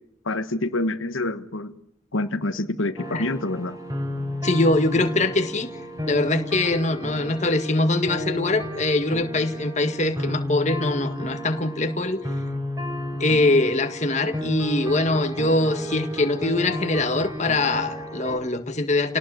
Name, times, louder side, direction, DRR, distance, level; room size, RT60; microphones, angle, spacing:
voice 1, 0.2-1.7 2.1-3.7, left 2 dB, 85° left, 9 dB, 1.4 m, -27 dB
sound 1, 3.0-18.4, equal, 15° right, 5.7 m, -32 dB
voice 2, 4.4-5.7 6.1-12.2 13.2-19.2, left 2 dB, 35° left, 7 dB, 1.8 m, -23 dB
29.0 x 18.5 x 9.3 m, 0.78 s
head